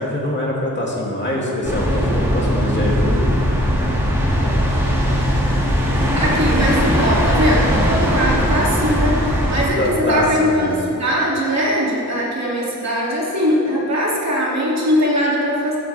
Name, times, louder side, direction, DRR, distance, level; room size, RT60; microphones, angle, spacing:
voice 1, 0.0-3.3 9.8-10.8, left 1 dB, 30° left, -5 dB, 2.7 m, -23 dB
sound 1, 1.6-9.7, equal, 5° right, 2.2 m, -19 dB
voice 2, 5.8-15.8, equal, 50° right, -6 dB, 2.7 m, -21 dB
15.0 x 9.8 x 3.5 m, 2.7 s
wide cardioid pair, 100°, 35 cm